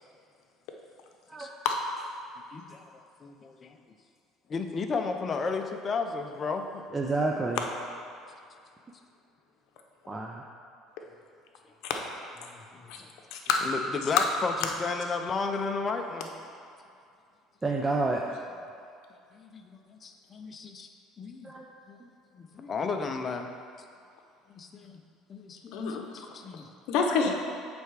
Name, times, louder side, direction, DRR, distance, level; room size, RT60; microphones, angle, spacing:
voice 1, 2.5-2.8 3.2-3.8 4.5-6.8 12.4-13.1 13.6-16.3 19.3-20.9 21.2-21.5 21.9-22.0 22.3-23.5 24.5-25.0 25.3-25.8 26.1-26.7 27.2-27.3, left 4 dB, 35° left, 5 dB, 0.6 m, -33 dB
voice 2, 6.9-7.6 10.1-10.4 17.6-18.2 21.4-21.7, right 3 dB, 20° right, 0 dB, 0.5 m, -29 dB
voice 3, 13.3-13.6 14.2-14.3 25.7-26.1 26.9-27.3, left 6 dB, 70° left, 2 dB, 0.8 m, -26 dB
7.8 x 3.5 x 4.8 m, 2.4 s
supercardioid pair, 100°, 0 cm